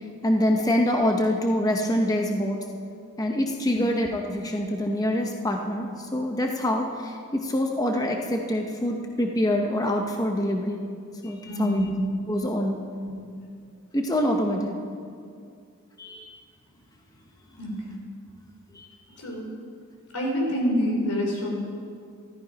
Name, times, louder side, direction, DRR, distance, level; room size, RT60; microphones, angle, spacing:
voice 1, 0.2-2.6 3.2-10.8 11.2-11.8 12.3-12.8 13.9-14.8 16.0-16.3 18.7-18.9, left 1 dB, 15° left, 2 dB, 0.8 m, -25 dB
voice 2, 11.5-11.9 13.0-13.1 17.6-17.7 19.2-19.4 20.1-21.5, equal, 90° left, -1 dB, 3.7 m, -26 dB
13.0 x 13.0 x 5.1 m, 2.3 s
head